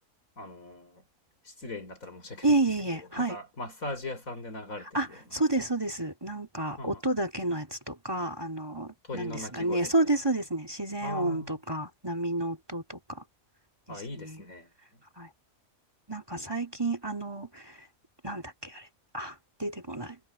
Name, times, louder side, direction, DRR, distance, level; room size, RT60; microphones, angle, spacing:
voice 1, 0.4-1.0 1.4-2.7 2.9-5.3 6.8-7.0 9.0-9.9 11.0-11.6 13.9-14.7, left 2 dB, 75° left, 4.6 m, -40 dB
voice 2, 2.4-3.4 4.9-13.2 13.9-14.4 15.2-15.3 16.1-17.8 18.2-18.9 19.1-20.2, right 2 dB, 15° right, 3.1 m, -30 dB
omnidirectional pair, 1.4 m